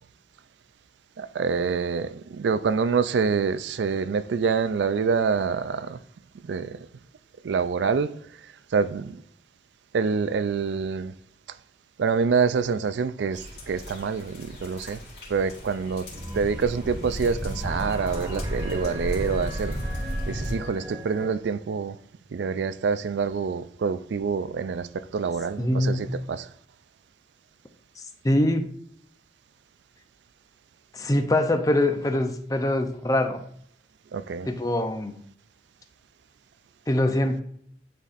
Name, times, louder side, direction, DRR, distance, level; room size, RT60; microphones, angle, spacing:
voice 1, 1.2-6.0 6.4-6.9 7.4-8.1 8.7-9.2 9.9-11.1 12.0-15.0 15.3-16.1 16.3-19.8 20.3-22.0 22.3-26.5 34.1-34.5, right 5 dB, 85° right, 0.4 m, -26 dB
sound 1, 13.3-20.5, equal, 70° left, 2.4 m, -34 dB
sound 2, 16.1-21.3, right 1 dB, 25° right, 0.7 m, -39 dB
voice 2, 25.6-26.1 28.0-28.6 30.9-33.4 34.5-35.1 36.9-37.4, left 1 dB, 20° left, 0.5 m, -24 dB
10.0 x 4.1 x 2.5 m
head